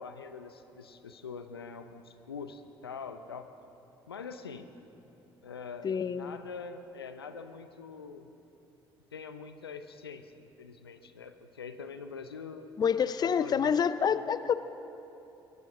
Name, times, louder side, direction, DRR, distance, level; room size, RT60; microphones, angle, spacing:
voice 1, 0.0-3.5 4.1-4.7 5.4-8.3 9.1-12.7 13.2-13.7, left 5 dB, 85° left, 9 dB, 0.6 m, -44 dB
voice 2, 5.8-6.4 12.8-14.5, left 7 dB, 35° left, 14 dB, 0.5 m, -27 dB
23.0 x 8.4 x 6.4 m, 2.9 s
figure-of-eight pair, 45°, 12 cm